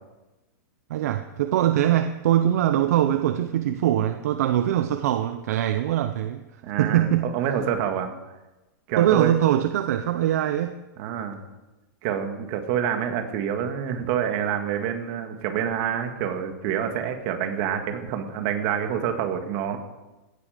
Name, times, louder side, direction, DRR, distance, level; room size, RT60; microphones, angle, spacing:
voice 1, 0.9-6.4 6.8-7.3 9.0-10.8, right 11 dB, 50° right, 9 dB, 0.9 m, -22 dB
voice 2, 6.6-8.1 8.9-9.3 11.0-11.4 12.0-19.8, right 8 dB, 35° right, 5 dB, 2.1 m, -27 dB
17.5 x 15.0 x 5.2 m, 1.1 s
supercardioid pair, 170°, 11 cm